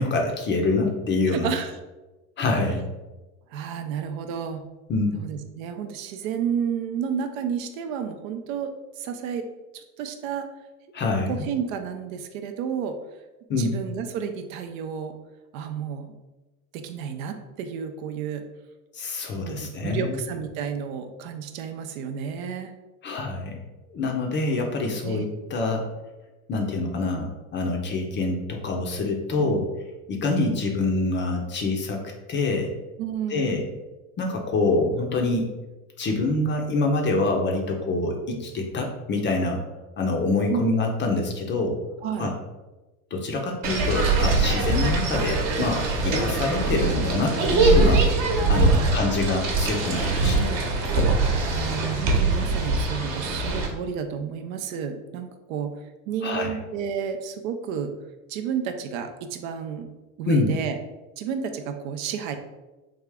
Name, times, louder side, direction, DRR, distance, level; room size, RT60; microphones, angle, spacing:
voice 1, 0.0-1.5 2.4-2.8 4.9-5.2 10.9-11.5 13.5-13.8 18.9-20.2 23.0-23.6 23.9-25.9 26.5-29.7 30.1-32.0 32.3-32.7 33.3-33.6 34.2-35.5 36.0-39.6 40.0-41.8 42.2-42.3 43.1-48.1 48.5-50.5 56.2-56.5 60.3-60.5, left 2 dB, 25° left, 2 dB, 0.5 m, -25 dB
voice 2, 1.3-1.8 3.5-4.6 5.1-8.7 9.0-9.5 9.7-10.5 11.3-13.0 13.6-15.1 15.5-16.1 16.7-18.4 19.4-22.7 25.0-25.3 29.4-29.6 33.0-33.6 40.5-40.7 42.0-42.3 48.5-49.0 50.2-50.7 51.3-55.8 56.1-57.9 58.3-59.9 60.2-60.8 61.2-62.4, right 7 dB, 65° right, 7 dB, 0.6 m, -31 dB
sound 1, 43.6-53.7, right 3 dB, 50° right, 1.0 m, -22 dB
3.5 x 2.4 x 3.3 m, 1.1 s
hypercardioid pair, 90°, 44 cm